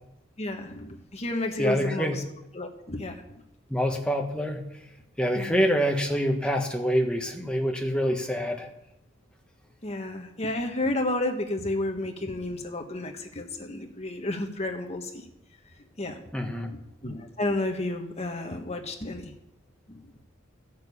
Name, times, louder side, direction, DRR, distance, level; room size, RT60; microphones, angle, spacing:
voice 1, 0.4-2.2 2.5-3.4 5.3-5.6 9.8-15.3 16.0-16.2 16.7-16.8 17.0-19.3 19.9-20.1, left 2 dB, 30° left, 4 dB, 1.4 m, -31 dB
voice 2, 1.6-2.2 3.7-4.6 5.2-8.7 16.3-16.7, equal, 5° left, 2 dB, 1.3 m, -26 dB
13.0 x 6.8 x 8.4 m, 0.84 s
head